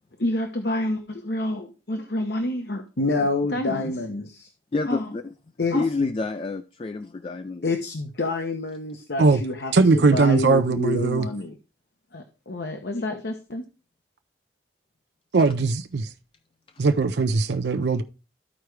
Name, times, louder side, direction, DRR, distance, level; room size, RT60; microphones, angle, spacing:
voice 1, 0.2-4.5 4.9-5.1 5.6-6.1 7.6-11.5 12.1-13.6, left 2 dB, 70° left, 0.9 m, -28 dB
voice 2, 4.7-5.3 5.7-7.7, left 3 dB, 30° left, 0.3 m, -28 dB
voice 3, 9.7-11.3 15.3-16.1 16.8-18.0, right 4 dB, 70° right, 0.5 m, -20 dB
13.5 x 4.7 x 3.2 m
head